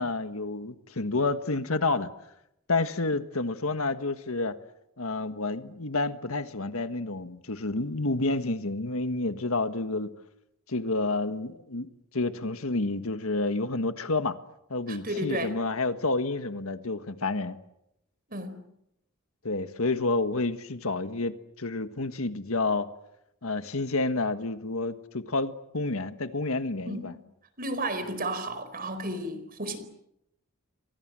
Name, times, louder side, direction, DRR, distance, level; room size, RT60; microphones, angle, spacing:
voice 1, 0.0-2.1 2.7-4.6 5.0-10.1 10.7-14.4 14.7-17.6 19.4-22.9 23.4-27.1, left 3 dB, 75° left, 10 dB, 1.6 m, -29 dB
voice 2, 14.9-15.5 18.3-18.6 26.9-27.1 27.6-29.8, right 1 dB, 40° right, 11 dB, 4.5 m, -33 dB
30.0 x 24.5 x 7.7 m, 0.83 s
head